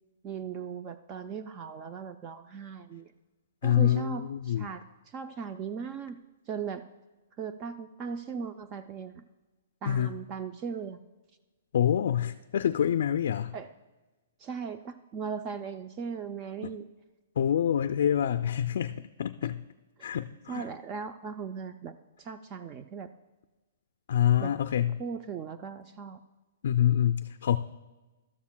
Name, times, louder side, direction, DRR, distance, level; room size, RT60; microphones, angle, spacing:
voice 1, 0.2-3.1 3.6-6.2 6.5-6.8 7.4-9.2 9.8-11.0 13.5-13.7 14.4-16.9 19.4-19.5 20.5-23.1 24.4-24.5 25.0-26.2, right 6 dB, 25° right, 9 dB, 0.3 m, -38 dB
voice 2, 3.6-4.7 9.8-10.1 11.7-13.5 17.4-19.6 20.0-20.7 24.1-25.0 26.6-27.6, left 10 dB, 60° left, 9 dB, 0.3 m, -26 dB
13.0 x 12.5 x 2.2 m, 1.2 s
hypercardioid pair, 160°, 0 cm